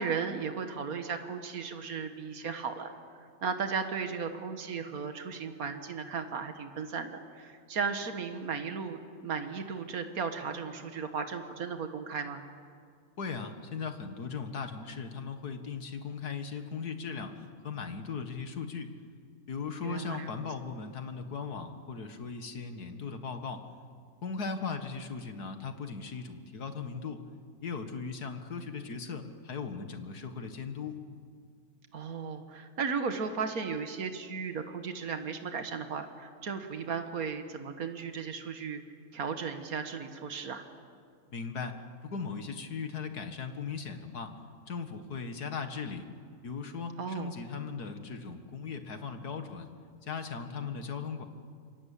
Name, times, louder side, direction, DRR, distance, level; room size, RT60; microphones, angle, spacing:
voice 1, 0.0-2.9 3.2-12.4 19.8-20.3 31.9-38.8 39.1-40.7 47.0-47.3, right 5 dB, 65° right, 7 dB, 2.1 m, -35 dB
voice 2, 13.2-18.9 19.5-23.6 24.2-27.2 27.6-31.0 41.3-44.3 44.7-46.1 46.4-49.7 50.0-51.2, left 5 dB, 90° left, 7 dB, 2.3 m, -38 dB
28.0 x 24.0 x 8.5 m, 2.1 s
omnidirectional pair, 1.6 m